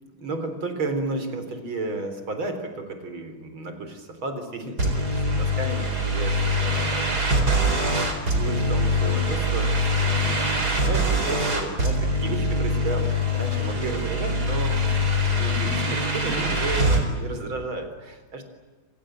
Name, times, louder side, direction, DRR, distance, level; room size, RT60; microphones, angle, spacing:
voice 1, 0.1-7.1 7.6-14.9 15.4-18.5, right 2 dB, 85° right, 8 dB, 4.8 m, -33 dB
sound 1, 4.8-17.0, equal, 50° right, 4.8 m, -23 dB
27.5 x 27.0 x 7.8 m, 1.4 s
omnidirectional pair, 2.2 m